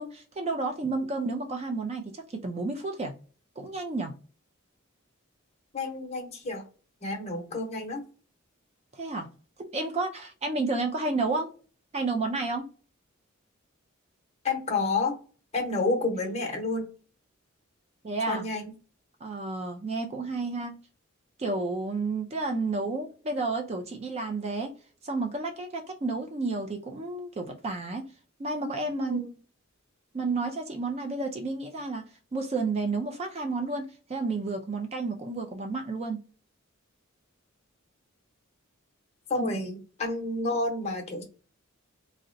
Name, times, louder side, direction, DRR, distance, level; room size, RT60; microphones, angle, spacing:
voice 1, 0.0-3.1 3.6-4.1 8.9-9.3 9.6-11.5 11.9-12.7 18.0-18.5 19.2-20.8 21.4-24.7 25.0-28.1 28.4-29.2 30.1-32.0 32.3-36.2 39.4-39.5, right 3 dB, 30° right, 0.4 m, -31 dB
voice 2, 5.7-6.6 7.0-8.0 14.4-15.1 15.5-16.9 18.3-18.7 29.0-29.3 39.3-41.2, left 3 dB, 30° left, 0.8 m, -30 dB
3.7 x 2.1 x 2.5 m
head